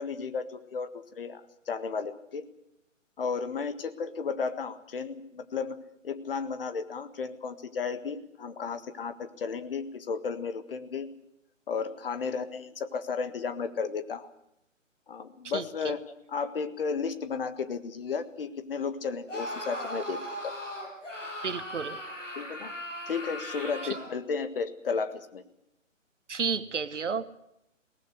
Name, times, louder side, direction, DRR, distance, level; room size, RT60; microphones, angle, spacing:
voice 1, 0.0-2.4 3.2-5.8 6.0-11.1 11.7-14.3 15.1-16.0 16.3-20.5 21.0-21.1 22.3-22.7 23.1-25.4, left 5 dB, 45° left, 10 dB, 1.7 m, -33 dB
voice 2, 15.5-15.9 21.4-22.0 26.3-27.3, right 5 dB, 65° right, 12 dB, 1.5 m, -32 dB
Screaming, 19.3-24.1, equal, 70° left, 7.8 m, -38 dB
22.0 x 18.5 x 8.0 m, 0.80 s
figure-of-eight pair, 140°, 39 cm